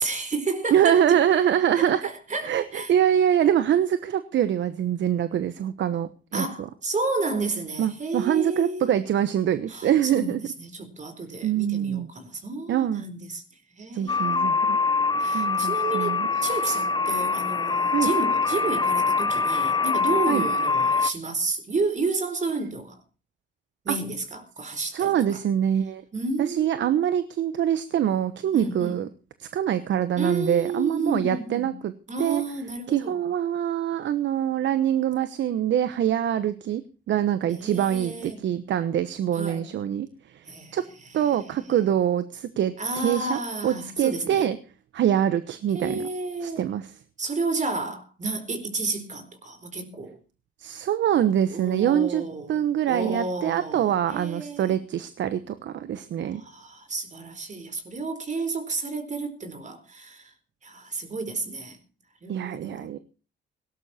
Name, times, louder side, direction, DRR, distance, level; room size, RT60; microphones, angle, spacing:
voice 1, 0.0-1.2 1.8-2.9 6.3-9.0 9.7-13.4 13.8-14.5 15.2-23.0 23.8-25.1 26.1-26.9 28.5-29.0 30.2-31.8 32.1-33.2 37.5-38.4 39.3-39.6 40.5-40.8 41.1-41.6 42.8-44.5 45.7-46.6 47.2-50.2 51.5-54.8 56.2-60.3 60.6-61.8 62.2-63.0, right 3 dB, 40° right, 4.2 m, -31 dB
voice 2, 0.7-2.0 2.4-6.7 7.8-10.4 11.4-12.1 12.7-13.0 13.9-14.8 15.2-16.3 17.9-18.1 20.3-20.5 23.9-24.0 24.9-26.0 26.4-29.1 29.4-31.9 32.2-32.4 32.9-36.8 37.1-40.4 40.7-40.8 41.1-44.6 44.9-46.1 46.4-46.9 50.6-52.2 52.5-56.4 62.3-63.0, right 10 dB, 70° right, 1.2 m, -24 dB
sound 1, 14.1-21.1, left 4 dB, 20° left, 1.0 m, -24 dB
18.0 x 11.5 x 4.4 m
cardioid pair, 90°, 20 cm